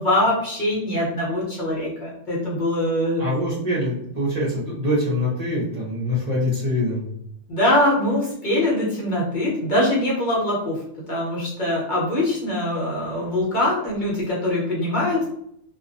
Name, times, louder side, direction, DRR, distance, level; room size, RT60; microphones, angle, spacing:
voice 1, 0.0-3.3 7.5-10.8 11.1-15.2, left 1 dB, 45° left, -6 dB, 0.8 m, -23 dB
voice 2, 3.2-7.1, left 1 dB, 40° right, -8 dB, 0.7 m, -24 dB
2.4 x 2.0 x 2.5 m, 0.72 s
omnidirectional pair, 1.2 m